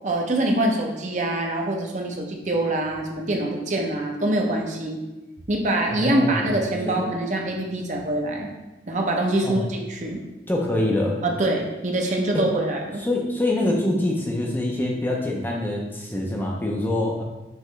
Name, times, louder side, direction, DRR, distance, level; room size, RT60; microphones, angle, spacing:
voice 1, 0.0-5.0 5.5-8.5 8.9-10.2 11.2-13.0, right 1 dB, 45° right, 1 dB, 0.6 m, -24 dB
voice 2, 5.9-7.0 9.4-9.6 10.5-11.2 12.3-12.4 13.0-17.2, left 1 dB, 10° left, -1 dB, 0.5 m, -25 dB
5.4 x 3.0 x 3.1 m, 1.1 s
head